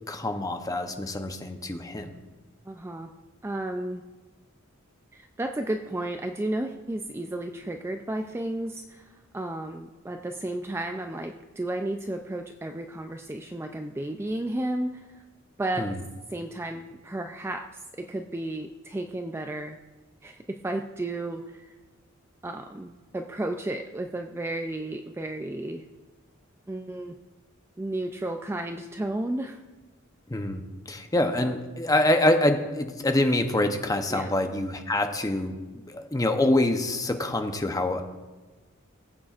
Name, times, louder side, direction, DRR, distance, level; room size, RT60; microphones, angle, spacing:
voice 1, 0.1-2.2 15.8-16.0 30.3-35.6 35.9-38.0, left 1 dB, 15° left, 6 dB, 0.7 m, -25 dB
voice 2, 2.7-3.1 3.4-4.1 5.1-9.1 9.3-15.2 15.6-15.9 16.3-17.7 17.9-19.8 20.2-21.7 22.4-25.8 26.7-27.2 27.8-29.6 31.4-31.5 34.1-34.3, right 1 dB, 10° right, 5 dB, 0.3 m, -33 dB
19.0 x 8.6 x 2.5 m, 1.2 s
head